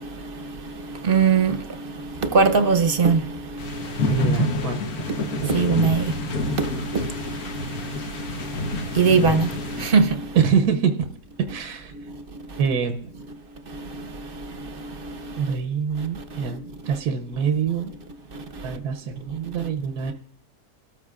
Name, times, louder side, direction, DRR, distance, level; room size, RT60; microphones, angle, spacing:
voice 1, 1.0-1.6 2.3-3.2 5.5-6.1 9.0-9.5 9.8-10.1, right 5 dB, 45° right, 0.9 m, -18 dB
sound 1, 3.6-9.9, left 2 dB, 75° left, 1.5 m, -28 dB
voice 2, 4.1-5.1 5.4-5.6 10.3-10.9 11.5-12.1 12.6-13.1 15.4-17.9 18.6-20.1, right 6 dB, 80° right, 1.3 m, -25 dB
28.0 x 13.5 x 2.4 m
omnidirectional pair, 1.6 m